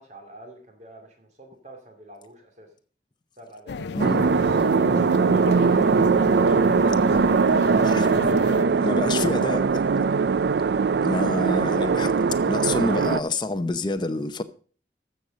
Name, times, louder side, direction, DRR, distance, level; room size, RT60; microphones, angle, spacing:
voice 1, 0.0-2.7 3.4-4.1, right 2 dB, 40° right, 2.5 m, -45 dB
sound 1, 3.7-8.7, left 5 dB, 70° left, 0.4 m, -34 dB
voice 2, 4.0-4.3 7.9-8.2 8.8-9.8 11.0-14.4, left 2 dB, 25° left, 0.7 m, -28 dB
sound 2, 4.0-13.2, right 5 dB, 65° right, 0.4 m, -21 dB
14.0 x 6.5 x 5.2 m
head